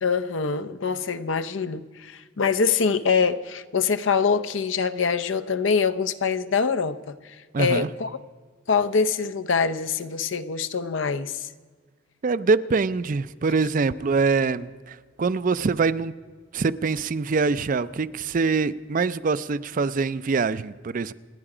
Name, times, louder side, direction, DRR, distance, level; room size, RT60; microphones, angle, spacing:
voice 1, 0.0-8.1 8.7-11.5, left 5 dB, 80° left, 11 dB, 0.7 m, -24 dB
voice 2, 7.5-7.9 12.2-16.1 16.5-21.1, right 4 dB, 45° right, 15 dB, 0.4 m, -24 dB
28.0 x 9.8 x 5.0 m, 1.5 s
head